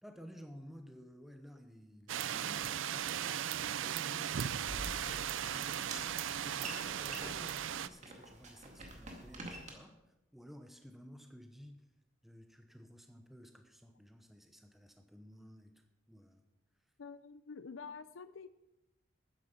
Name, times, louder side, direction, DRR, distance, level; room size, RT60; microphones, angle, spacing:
voice 1, 0.0-3.4 3.8-6.0 6.3-11.8 12.2-15.8 16.1-16.4, equal, ahead, 5 dB, 0.8 m, -54 dB
sound 1, 2.1-7.9, right 9 dB, 75° right, 0.5 m, -37 dB
sound 2, 4.6-9.7, right 2 dB, 35° right, 2.1 m, -48 dB
voice 2, 4.7-5.1 17.0-18.6, left 5 dB, 75° left, 14 dB, 0.5 m, -49 dB
13.0 x 9.9 x 5.2 m, 0.94 s
head